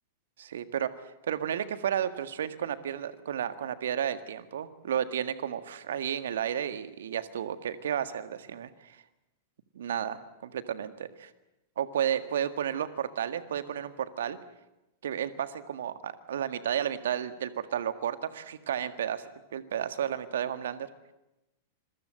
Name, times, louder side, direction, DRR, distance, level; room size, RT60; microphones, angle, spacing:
voice 1, 0.4-9.0 9.7-11.3 11.8-14.4 15.0-19.2 19.5-20.9, right 9 dB, 65° right, 11 dB, 1.7 m, -32 dB
26.5 x 23.0 x 7.8 m, 0.95 s
figure-of-eight pair, 95°, 0 cm